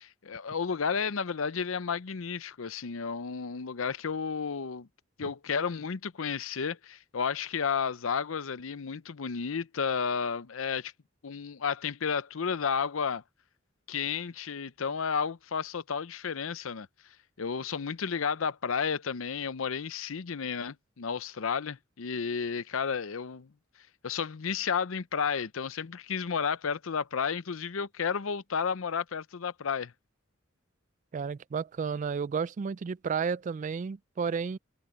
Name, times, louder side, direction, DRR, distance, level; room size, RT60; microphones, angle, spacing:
voice 1, 0.0-4.9 5.2-10.9 11.2-13.2 13.9-16.9 17.4-23.5 24.0-29.9, left 6 dB, 90° left, 0.7 m, -32 dB
voice 2, 31.1-34.6, right 6 dB, 40° right, 0.3 m, -32 dB
head